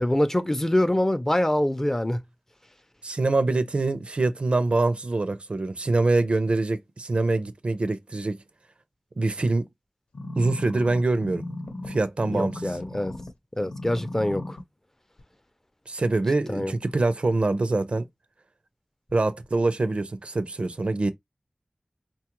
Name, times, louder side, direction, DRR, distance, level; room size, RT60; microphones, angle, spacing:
voice 1, 0.0-2.2 12.3-13.1 13.6-14.6 16.5-16.7, left 1 dB, 20° left, 0.5 m, -24 dB
voice 2, 3.0-8.4 9.2-9.7 10.4-11.4 11.9-12.7 15.9-18.0 19.1-21.1, right 2 dB, 65° right, 0.5 m, -24 dB
sound 1, 10.1-13.3 13.6-14.6 15.2-15.3, left 2 dB, 85° left, 0.8 m, -36 dB
4.1 x 2.3 x 2.9 m
wide cardioid pair, 65°, 2 cm